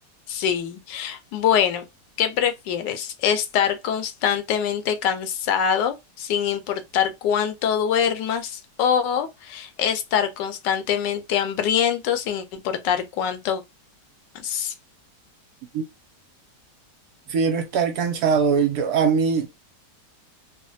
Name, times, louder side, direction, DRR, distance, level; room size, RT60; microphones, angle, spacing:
voice 1, 0.3-1.8 2.2-13.6 14.4-14.7, left 8 dB, 80° left, 1.3 m, -24 dB
voice 2, 17.3-19.5, right 6 dB, 70° right, 1.1 m, -21 dB
3.1 x 2.1 x 2.6 m
omnidirectional pair, 1.9 m